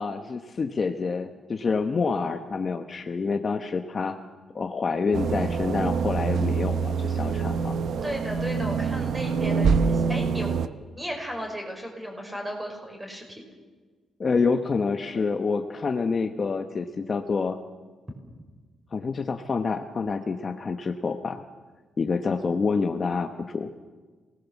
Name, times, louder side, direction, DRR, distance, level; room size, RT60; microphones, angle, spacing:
voice 1, 0.0-4.2 4.5-7.8 14.2-17.6 18.9-21.4 22.0-23.7, left 4 dB, 30° left, 6 dB, 1.0 m, -27 dB
sound 1, 5.1-10.7, right 5 dB, 65° right, 0.8 m, -25 dB
voice 2, 8.0-10.7 10.9-13.4 15.1-15.2, equal, 10° right, 2 dB, 5.6 m, -35 dB
27.5 x 19.5 x 7.2 m, 1.4 s
cardioid pair, 155°, 0 cm